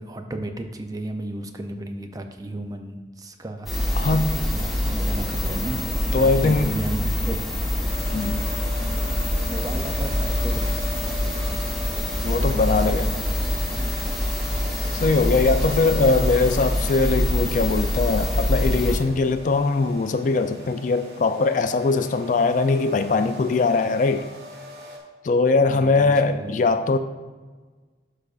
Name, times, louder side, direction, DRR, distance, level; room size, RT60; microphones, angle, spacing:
voice 1, 0.0-4.1 4.4-7.5 7.7-8.0 9.5-11.8 12.1-12.8 13.2-14.0 25.7-26.7, right 1 dB, 20° right, 6 dB, 0.5 m, -35 dB
sound 1, 3.7-19.0, left 1 dB, ahead, 1.2 m, -25 dB
voice 2, 3.9-4.3 6.1-6.8 8.1-8.4 12.2-13.1 15.0-24.3 25.2-27.0, left 3 dB, 45° left, 9 dB, 0.3 m, -21 dB
sound 2, 7.9-25.0, left 2 dB, 70° right, 1.4 m, -40 dB
11.5 x 5.0 x 2.4 m, 1.4 s
head